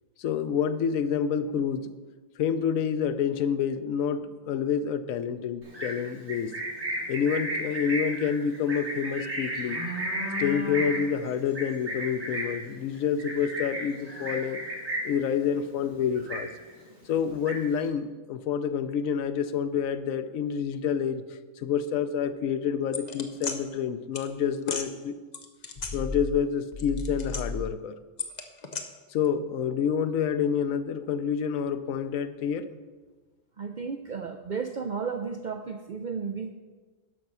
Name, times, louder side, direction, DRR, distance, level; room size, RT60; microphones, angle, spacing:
voice 1, 0.2-1.9 2.4-6.5 7.1-9.8 10.4-14.6 15.0-16.5 17.1-21.2 21.6-25.2 25.9-28.0 29.1-32.7, left 7 dB, 90° left, 11 dB, 1.0 m, -28 dB
Livestock farm animals working animals, 5.6-15.2 15.6-15.9 16.1-16.8 17.2-17.9, equal, 80° right, 4.1 m, -33 dB
sound 1, 22.9-23.6 24.1-24.3 24.6-24.9 25.3-26.4 26.7-27.7 28.2-28.8, left 3 dB, 40° left, 0.8 m, -33 dB
voice 2, 33.6-36.5, right 5 dB, 65° right, 6 dB, 0.4 m, -33 dB
12.5 x 5.3 x 6.0 m, 1.4 s
omnidirectional pair, 1.4 m